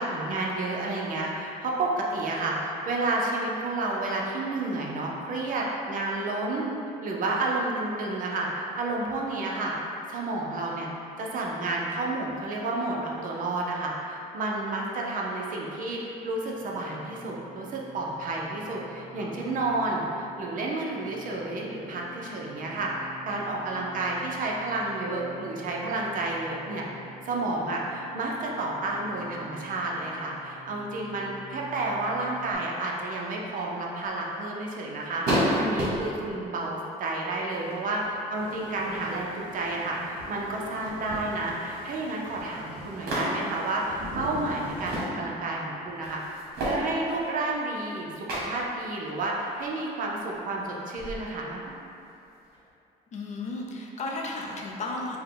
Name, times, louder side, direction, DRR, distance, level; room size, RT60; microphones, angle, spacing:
voice 1, 0.0-6.7 7.0-9.7 10.1-10.9 11.2-22.9 23.3-26.9 27.2-38.0 38.3-46.2 46.6-51.6, right 2 dB, 55° right, -2 dB, 0.6 m, -31 dB
sound 1, 16.3-32.5, equal, 15° right, 1.0 m, -48 dB
sound 2, 34.0-34.1 35.2-36.3 37.4-38.2 38.6-39.2 39.6-39.7 40.0-41.2 41.5-42.2 43.1-43.7 44.6-45.2 45.5-45.6 46.0-47.9 48.3-48.7 49.2-49.8 50.3-50.4 51.0-52.7, equal, 70° right, 1.3 m, -31 dB
sound 3, 38.3-45.1, left 1 dB, 35° right, 1.2 m, -42 dB
voice 2, 53.1-55.2, left 2 dB, 45° left, 0 dB, 0.5 m, -34 dB
4.3 x 2.2 x 3.8 m, 2.6 s
cardioid pair, 110°, 17 cm